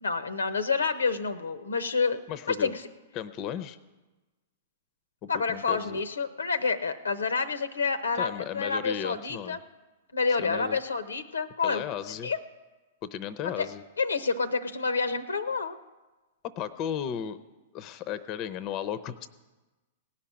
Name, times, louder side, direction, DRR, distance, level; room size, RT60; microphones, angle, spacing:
voice 1, 0.0-2.2 2.5-2.8 5.3-9.6 10.1-11.8 12.2-12.4 13.6-13.7 14.0-15.8, left 4 dB, 85° left, 12 dB, 0.8 m, -28 dB
voice 2, 2.3-2.7 3.1-3.8 5.2-6.0 8.2-9.6 10.4-10.8 11.6-12.3 13.0-13.8 16.4-17.4 17.7-19.3, left 9 dB, 40° left, 14 dB, 0.7 m, -35 dB
17.5 x 5.8 x 8.7 m, 1.2 s
hypercardioid pair, 110°, 0 cm